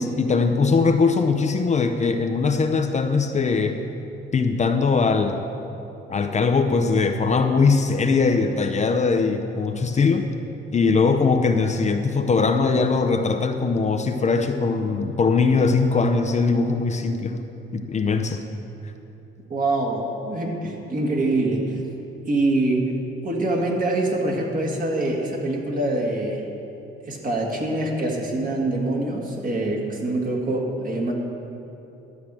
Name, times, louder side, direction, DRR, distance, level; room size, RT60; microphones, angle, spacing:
voice 1, 0.0-3.8 4.3-5.4 6.1-10.3 10.7-17.4 17.7-18.4, left 4 dB, 35° left, 6 dB, 0.6 m, -21 dB
voice 2, 19.5-21.8 22.3-22.9 23.2-26.4 27.1-31.1, right 2 dB, 40° right, -1 dB, 1.9 m, -24 dB
12.5 x 4.7 x 7.5 m, 3.0 s
cardioid pair, 90°, 20 cm